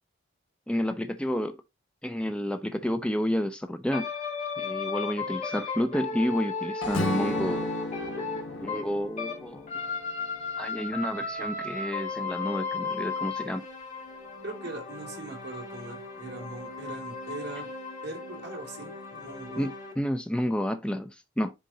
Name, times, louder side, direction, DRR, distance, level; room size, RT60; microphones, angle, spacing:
voice 1, 0.7-1.6 2.0-4.1 4.6-7.7 8.6-9.7 10.6-13.7 19.6-21.5, equal, 5° left, 0.3 m, -30 dB
sound 1, 3.9-9.4 9.7-19.9, left 4 dB, 35° left, 2.0 m, -35 dB
sound 2, 6.8-10.9, left 1 dB, 65° left, 1.2 m, -43 dB
Strum, 6.9-11.1, left 1 dB, 80° left, 1.4 m, -35 dB
voice 2, 14.4-17.7 18.0-19.7, right 2 dB, 50° right, 2.4 m, -40 dB
9.9 x 3.7 x 2.7 m
head